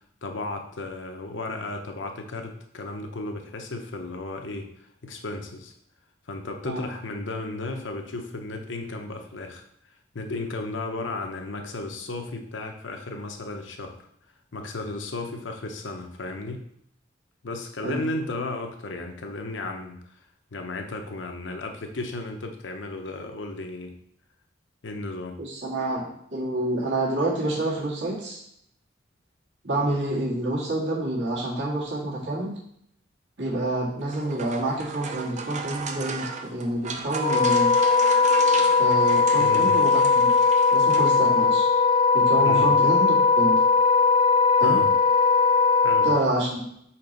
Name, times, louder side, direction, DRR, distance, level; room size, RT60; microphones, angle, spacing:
voice 1, 0.2-5.7 6.3-9.6 10.1-14.0 14.5-16.7 17.4-20.0 20.5-24.0 24.8-25.4 39.4-39.7 42.4-42.7 44.6-44.9 45.8-46.1, left 2 dB, 80° left, 4 dB, 0.8 m, -34 dB
voice 2, 25.4-28.4 29.6-32.6 33.4-37.7 38.8-40.5 40.7-41.7 42.1-43.6 44.6-44.8 46.0-46.7, right 1 dB, 70° right, -5 dB, 1.8 m, -28 dB
sound 1, 34.0-41.6, right 4 dB, 40° right, 0.5 m, -35 dB
Wind instrument woodwind instrument, 37.2-46.2, left 4 dB, 40° left, 0.5 m, -19 dB
4.4 x 4.2 x 5.1 m, 0.72 s
head